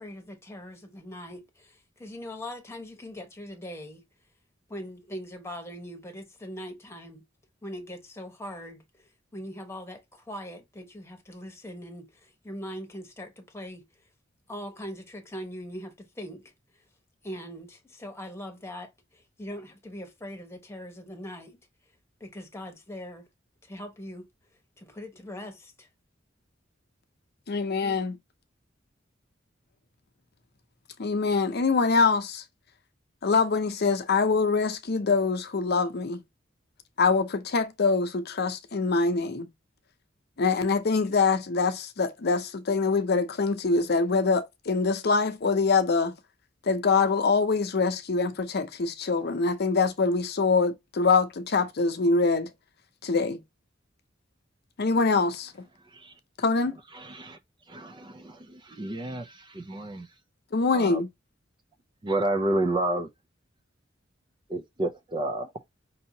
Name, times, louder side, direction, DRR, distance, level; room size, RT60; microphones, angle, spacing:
voice 1, 0.0-4.0 4.7-7.2 7.6-13.8 14.5-16.5 17.2-21.6 22.2-23.3 23.6-24.3 24.8-25.9 27.8-28.0, equal, 15° left, 1.1 m, -41 dB
voice 2, 27.5-28.2 31.0-32.4 33.2-36.2 37.0-39.5 40.4-46.1 46.7-52.5 53.0-53.4 54.8-55.5 56.4-56.8 60.5-61.1, left 4 dB, 55° left, 0.6 m, -24 dB
voice 3, 56.9-57.4 57.7-60.1 60.7-61.0 62.0-63.1 64.5-65.5, right 2 dB, 25° right, 0.4 m, -30 dB
5.4 x 2.8 x 2.7 m
head